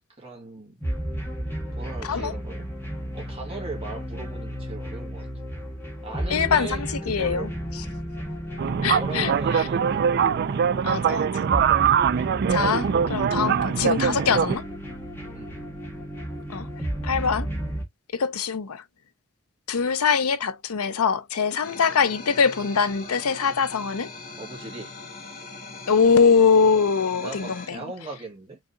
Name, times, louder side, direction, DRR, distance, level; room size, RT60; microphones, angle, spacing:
voice 1, 0.1-1.0 1.7-2.7 3.1-5.4 6.0-7.5 8.9-10.3 13.3-13.7 15.3-15.5 24.4-24.9 27.1-28.6, right 3 dB, 25° right, 2.0 m, -38 dB
sound 1, 0.8-17.8, equal, 10° left, 1.8 m, -33 dB
voice 2, 6.3-7.5 8.8-9.3 10.8-11.3 12.5-14.6 16.5-16.7 17.0-17.5 18.1-18.8 19.7-24.1 25.9-27.8, left 6 dB, 80° left, 0.7 m, -22 dB
sound 2, 8.6-14.5, right 7 dB, 45° right, 0.3 m, -22 dB
sound 3, 21.6-27.7, left 3 dB, 40° left, 1.4 m, -40 dB
4.9 x 3.7 x 2.6 m
head